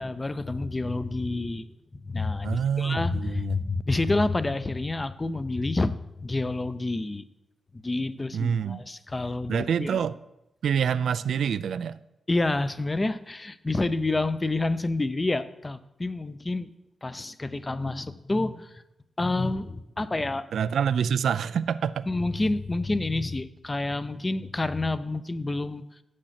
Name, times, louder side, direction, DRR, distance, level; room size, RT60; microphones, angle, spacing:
voice 1, 0.0-1.7 1.9-7.3 7.8-10.0 12.3-16.7 17.0-18.7 19.2-20.5 22.1-25.8, left 2 dB, 20° left, 13 dB, 0.5 m, -28 dB
voice 2, 2.4-3.6 8.3-8.8 9.5-10.2 10.6-12.0 20.5-22.1, right 7 dB, 90° right, 15 dB, 0.3 m, -26 dB
7.9 x 6.4 x 5.8 m, 0.87 s
wide cardioid pair, 115°, 0 cm